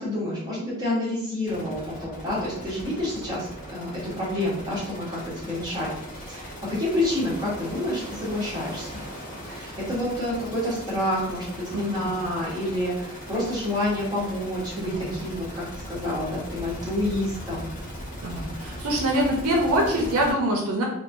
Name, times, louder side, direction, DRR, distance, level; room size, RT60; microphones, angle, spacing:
voice 1, 0.0-9.0 9.4-17.7, left 1 dB, 20° right, -7 dB, 0.9 m, -29 dB
sound 1, 1.4-20.3, equal, 35° left, 1.0 m, -39 dB
voice 2, 11.7-12.1 14.8-15.1 18.2-20.8, right 1 dB, 75° right, 0 dB, 0.5 m, -25 dB
3.0 x 2.1 x 2.5 m, 0.81 s
head